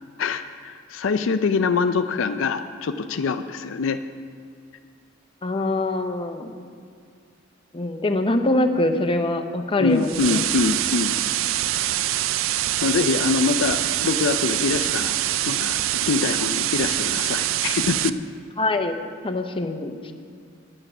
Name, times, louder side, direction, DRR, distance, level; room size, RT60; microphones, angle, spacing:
voice 1, 0.2-4.0 9.8-11.2 12.8-15.2 15.5-15.8 16.1-18.2, left 4 dB, 70° left, 10 dB, 0.4 m, -24 dB
voice 2, 5.4-6.7 7.7-10.4 18.6-19.0 19.2-20.1, left 2 dB, 25° left, 7 dB, 0.7 m, -24 dB
sound 1, 10.0-18.1, right 13 dB, 80° right, 0.4 m, -24 dB
9.7 x 9.0 x 6.0 m, 2.3 s
head